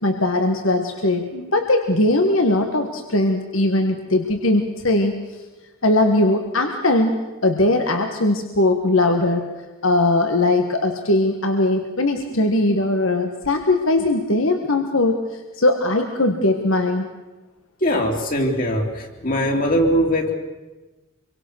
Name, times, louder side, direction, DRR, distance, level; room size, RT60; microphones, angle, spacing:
voice 1, 0.0-5.1 5.8-7.1 7.4-9.5 9.8-17.1, left 2 dB, 70° left, 5 dB, 1.7 m, -20 dB
voice 2, 17.8-20.3, equal, 40° left, 2 dB, 3.2 m, -21 dB
26.0 x 24.0 x 6.5 m, 1.2 s
head